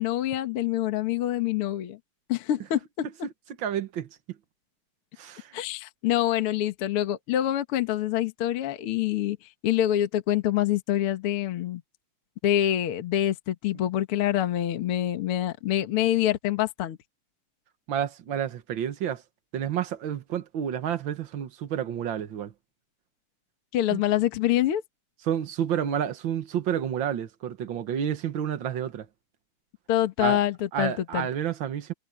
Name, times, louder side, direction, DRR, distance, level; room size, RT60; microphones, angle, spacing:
voice 1, 0.0-2.0 2.3-3.1 5.5-9.4 9.6-11.8 12.4-17.0 23.7-24.8 29.9-31.3, left 12 dB, 55° left, 1.8 m, -26 dB
voice 2, 3.6-4.1 5.2-5.6 17.9-19.2 19.5-22.5 23.9-24.0 25.2-29.1 30.2-30.4 30.7-31.9, right 9 dB, 60° right, 1.2 m, -30 dB
omnidirectional pair, 3.8 m